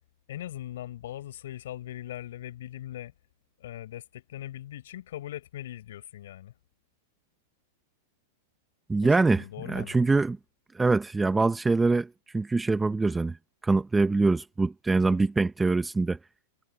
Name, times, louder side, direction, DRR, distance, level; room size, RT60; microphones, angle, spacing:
voice 1, 0.3-3.1 3.6-6.5 9.0-10.1, left 12 dB, 75° left, 6.6 m, -40 dB
voice 2, 8.9-10.4 10.7-13.4 13.6-16.2, right 3 dB, 10° right, 0.7 m, -24 dB
supercardioid pair, 150°, 0 cm